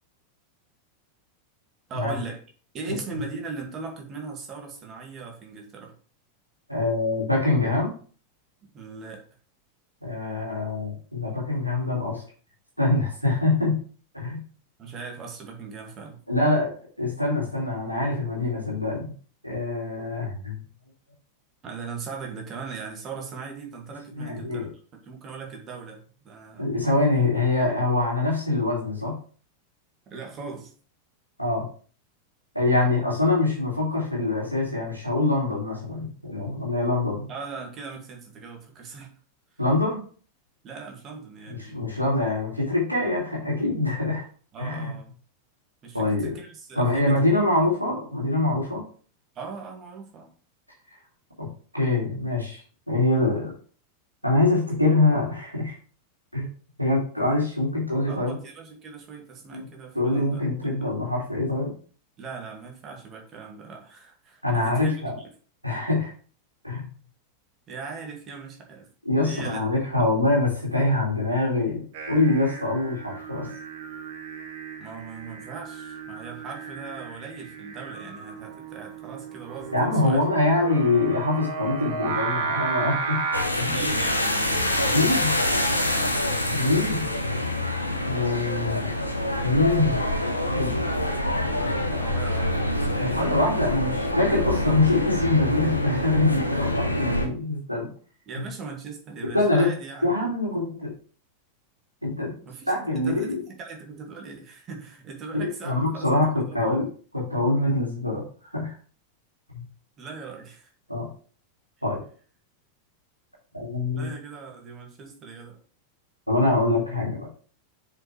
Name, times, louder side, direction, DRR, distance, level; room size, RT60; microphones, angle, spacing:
voice 1, 1.9-2.4 2.7-5.9 8.6-9.2 14.8-16.2 21.6-26.7 30.1-30.7 37.3-39.1 40.6-41.8 44.5-45.2 45.8-47.7 49.3-50.3 58.1-60.9 62.2-65.3 67.7-68.9 69.2-69.8 74.8-80.2 83.7-85.3 85.8-86.2 91.4-93.3 98.3-100.1 102.4-106.8 110.0-110.7 113.9-115.6, right 5 dB, 30° right, 1 dB, 2.3 m, -39 dB
voice 2, 6.7-7.9 10.0-12.2 12.8-13.8 14.1-14.4 16.3-16.7 17.0-19.1 19.4-20.6 24.1-24.7 26.6-29.2 31.4-31.7 32.5-37.3 39.6-40.0 41.5-44.3 44.6-44.9 45.9-46.3 46.7-48.8 51.4-52.6 52.9-53.5 54.2-55.8 56.3-56.5 56.8-58.4 59.5-59.6 59.9-61.7 64.4-65.1 65.6-66.1 66.6-66.9 69.0-71.8 72.1-73.5 79.7-83.2 83.5-83.7 84.9-85.4 86.5-87.0 88.1-88.9 89.4-90.0 90.5-90.8 91.9-92.0 93.0-97.9 98.4-98.5 99.3-99.7 100.0-100.9 102.0-102.3 102.7-103.4 105.3-106.9 107.1-108.2 108.5-108.7 109.5-109.6 110.9-111.1 111.8-112.0 113.5-114.1 116.3-117.3, left 2 dB, 90° right, -4 dB, 2.5 m, -24 dB
Singing, 71.9-83.4, right 5 dB, 50° right, 1.5 m, -34 dB
sound 1, 83.3-97.3, left 1 dB, 85° left, 1.1 m, -26 dB
6.9 x 5.7 x 3.3 m, 0.41 s
figure-of-eight pair, 90°, 0 cm